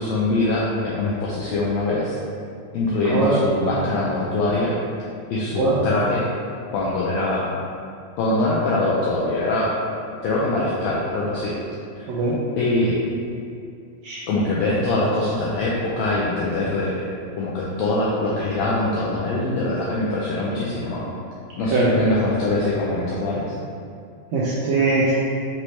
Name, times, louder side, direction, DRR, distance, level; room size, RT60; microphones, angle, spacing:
voice 1, 0.0-2.2 2.7-4.7 5.3-6.2 6.7-7.5 8.2-9.7 10.2-11.5 12.0-12.1 12.6-13.0 14.3-17.0 17.4-21.0 21.6-23.5, left 2 dB, 85° left, -6 dB, 1.5 m, -23 dB
voice 2, 3.1-3.4 5.6-5.8 12.1-12.4 14.0-14.2 21.7-21.9 24.3-25.1, right 3 dB, 85° right, -7 dB, 1.5 m, -21 dB
6.0 x 3.1 x 2.7 m, 2.4 s
omnidirectional pair, 3.7 m